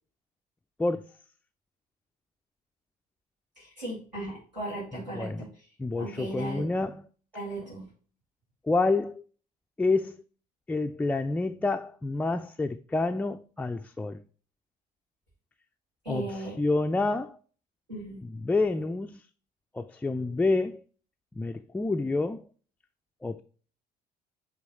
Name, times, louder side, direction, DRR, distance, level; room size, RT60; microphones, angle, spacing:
voice 1, 3.6-5.5 6.0-6.7 7.3-7.9 16.0-16.6 17.9-18.2, right 1 dB, 85° right, 2.2 m, -37 dB
voice 2, 5.8-7.0 8.7-9.2 9.8-10.2 10.7-14.2 16.1-17.4 18.2-19.2 19.7-20.8 21.4-22.5 23.2-23.4, left 3 dB, 5° left, 0.3 m, -28 dB
7.5 x 3.2 x 4.0 m
figure-of-eight pair, 50°, 21 cm